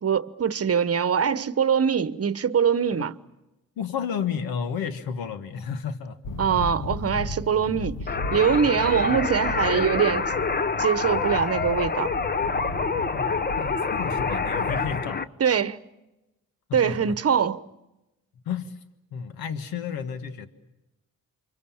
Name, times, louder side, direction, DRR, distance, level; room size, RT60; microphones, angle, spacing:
voice 1, 0.0-3.1 6.4-8.0 8.3-10.3 10.8-12.1 15.4-15.8 16.7-17.6, right 7 dB, 45° right, 1.1 m, -23 dB
voice 2, 3.8-6.2 9.1-9.2 13.1-15.3 16.7-17.2 18.5-18.8 19.1-20.5, left 7 dB, 90° left, 1.6 m, -32 dB
sound 1, 6.2-15.0, left 2 dB, 60° left, 1.9 m, -35 dB
sound 2, 8.1-15.3, left 4 dB, 25° left, 1.0 m, -27 dB
29.0 x 24.5 x 7.2 m
cardioid pair, 65°, 35 cm